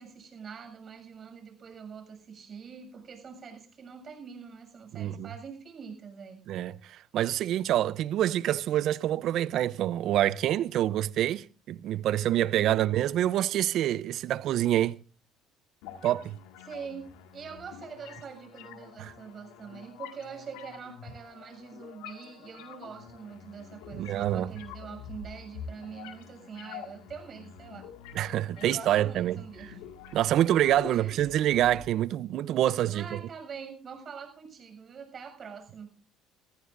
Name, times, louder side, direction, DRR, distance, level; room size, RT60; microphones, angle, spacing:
voice 1, 0.0-6.4 12.6-12.9 16.6-27.9 28.5-29.7 30.1-30.2 30.8-31.2 32.9-35.9, right 6 dB, 45° right, 7.0 m, -44 dB
voice 2, 4.9-5.3 6.5-15.0 16.0-16.4 19.0-19.1 23.9-24.5 28.1-29.4 30.1-33.1, right 12 dB, 65° right, 0.7 m, -26 dB
sound 1, 15.8-31.8, left 7 dB, 80° left, 2.0 m, -47 dB
24.0 x 14.5 x 2.6 m
hypercardioid pair, 65°, 0 cm